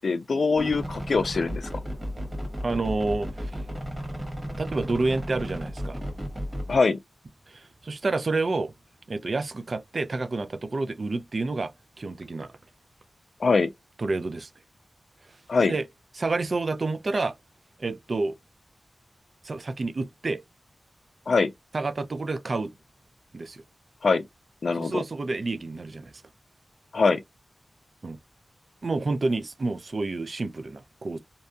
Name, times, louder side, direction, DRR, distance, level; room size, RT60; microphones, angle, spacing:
voice 1, 0.0-1.7 6.7-7.0 13.4-13.7 15.5-15.7 21.3-21.5 24.0-24.2 24.6-25.0 26.9-27.2, left 4 dB, 65° left, 0.3 m, -23 dB
sound 1, 0.6-6.8, equal, 15° right, 1.2 m, -34 dB
voice 2, 2.6-3.5 4.6-6.0 7.5-8.7 9.1-11.7 12.0-12.5 14.0-14.5 15.7-15.9 16.2-17.3 17.8-18.4 19.4-20.4 21.7-22.7 23.3-23.6 24.8-26.1 28.0-28.2 28.8-31.2, right 3 dB, 45° right, 0.3 m, -29 dB
2.6 x 2.2 x 2.6 m
wide cardioid pair, 120°, 0 cm